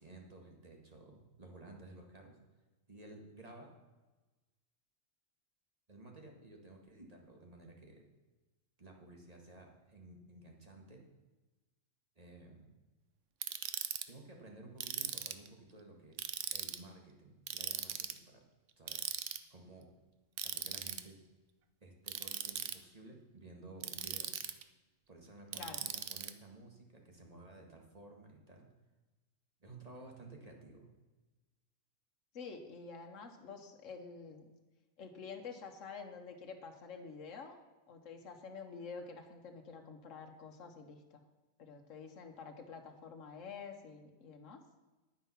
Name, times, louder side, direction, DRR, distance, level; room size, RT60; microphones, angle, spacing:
voice 1, 0.0-2.4 2.9-3.7 5.9-8.0 8.8-11.0 12.2-12.7 14.1-18.4 18.8-19.0 19.5-19.9 20.4-21.2 21.8-24.3 25.1-28.7 29.6-30.9, right 2 dB, 30° right, 1 dB, 1.9 m, -54 dB
Ratchet pawl, 13.4-14.0 14.8-15.5 16.2-16.8 17.5-18.2 18.9-19.4 20.4-21.0 22.1-22.7 23.8-24.6 25.5-26.3, right 9 dB, 75° right, 1.1 m, -39 dB
voice 2, 32.3-34.5 35.0-37.6 37.9-41.2 41.6-44.6, left 5 dB, 75° left, 3 dB, 1.5 m, -48 dB
10.0 x 9.3 x 5.8 m, 1.2 s
omnidirectional pair, 1.3 m